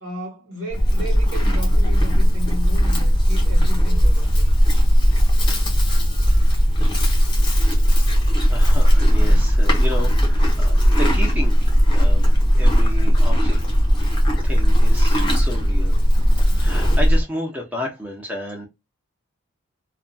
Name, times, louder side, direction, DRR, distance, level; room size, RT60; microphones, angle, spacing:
voice 1, 0.0-4.5, left 1 dB, 60° right, 1.1 m, -34 dB
Livestock farm animals working animals, 0.7-17.2, equal, 20° left, 0.9 m, -17 dB
voice 2, 8.5-13.6 14.4-15.9 16.4-18.7, left 1 dB, 5° right, 0.6 m, -32 dB
2.4 x 2.2 x 2.5 m
head